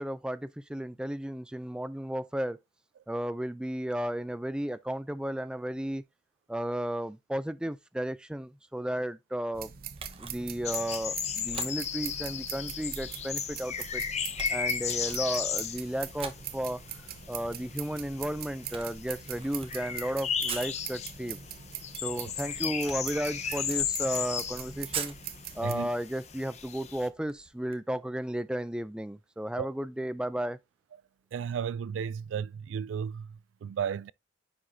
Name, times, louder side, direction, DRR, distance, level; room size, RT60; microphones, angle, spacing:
voice 1, 0.0-2.6 3.1-6.0 6.5-9.7 10.2-14.0 14.5-16.8 17.3-21.4 22.0-25.2 25.5-30.6, right 1 dB, 5° right, 0.3 m, -34 dB
sound 1, 9.5-25.7, right 9 dB, 50° right, 0.7 m, -42 dB
Camera, 9.9-27.8, right 6 dB, 30° right, 1.0 m, -46 dB
sound 2, 10.6-27.1, left 8 dB, 35° left, 0.7 m, -36 dB
voice 2, 31.3-34.1, right 7 dB, 90° right, 0.3 m, -34 dB
9.9 x 4.9 x 2.7 m
head